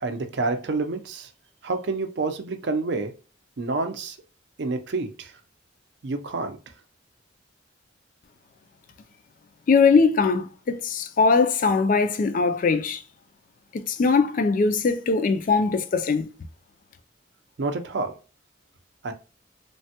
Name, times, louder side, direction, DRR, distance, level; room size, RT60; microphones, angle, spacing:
voice 1, 0.0-1.3 1.6-3.1 3.6-4.2 4.6-5.3 6.0-6.6 17.6-18.1 19.0-19.1, right 3 dB, 65° right, 0.5 m, -28 dB
voice 2, 9.7-13.0 13.7-16.3, left 4 dB, 45° left, 0.3 m, -21 dB
3.2 x 2.1 x 2.8 m
head